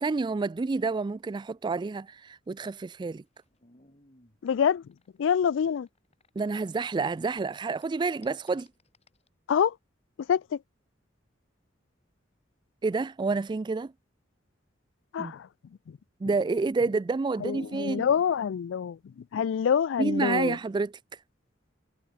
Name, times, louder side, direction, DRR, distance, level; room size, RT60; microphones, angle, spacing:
voice 1, 0.0-3.2 6.4-8.7 12.8-13.9 15.2-15.3 16.2-18.1 20.0-21.2, right 4 dB, 25° right, 0.3 m, -29 dB
sound 1, 2.5-6.8 7.1-9.3, left 2 dB, 35° left, 7.4 m, -63 dB
voice 2, 4.4-4.8 5.2-5.9 9.5-9.7 10.3-10.6 15.1-15.5 17.4-19.0 19.3-20.6, left 7 dB, 70° left, 0.3 m, -26 dB
head